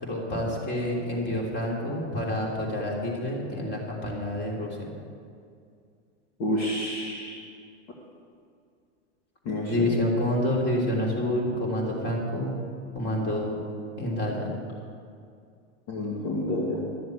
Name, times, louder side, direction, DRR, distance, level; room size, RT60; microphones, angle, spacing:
voice 1, 0.0-4.9 9.7-12.6 12.9-13.5 14.0-14.5, left 1 dB, 30° left, -2 dB, 3.5 m, -28 dB
voice 2, 6.4-7.4 9.5-9.7 15.9-16.8, left 1 dB, 50° left, -3 dB, 2.3 m, -29 dB
13.0 x 7.7 x 8.1 m, 2.3 s
hypercardioid pair, 120°, 36 cm